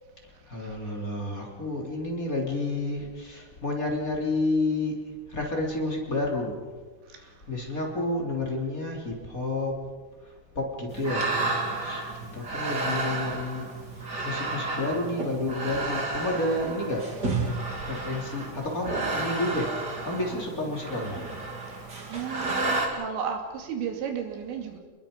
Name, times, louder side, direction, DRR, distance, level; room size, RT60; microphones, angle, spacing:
voice 1, 0.5-4.9 5.3-6.6 7.5-9.8 10.5-11.3 11.8-13.6 14.2-17.0 17.9-19.7 20.0-21.2, left 2 dB, 20° left, -1 dB, 3.2 m, -30 dB
sound 1, 10.9-22.9, right 3 dB, 25° right, 2.8 m, -31 dB
voice 2, 22.1-24.8, right 7 dB, 85° right, 4 dB, 4.6 m, -33 dB
28.5 x 21.0 x 5.3 m, 1.4 s
omnidirectional pair, 5.0 m